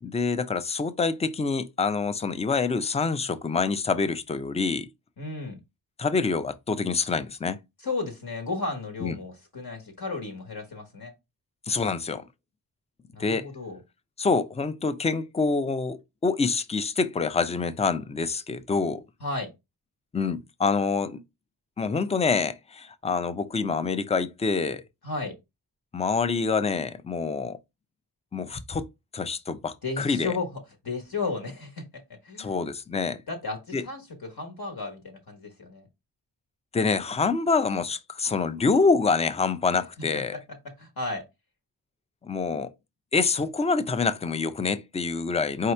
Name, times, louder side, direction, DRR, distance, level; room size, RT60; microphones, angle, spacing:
voice 1, 0.0-4.9 6.0-7.6 9.0-9.2 11.7-12.3 13.2-13.5 14.2-19.0 20.1-21.2 21.8-24.8 25.9-27.6 28.3-28.9 29.1-30.4 32.4-33.2 33.7-33.8 36.7-40.4 42.2-42.7 43.1-45.7, left 4 dB, 15° left, 0.3 m, -26 dB
voice 2, 5.2-5.6 7.8-11.1 13.1-13.8 19.2-19.5 25.0-25.3 29.8-30.5 30.8-32.6 33.3-35.8 40.3-40.4 40.8-41.3, left 3 dB, 60° left, 1.2 m, -34 dB
4.7 x 2.8 x 3.2 m
wide cardioid pair, 120°, 42 cm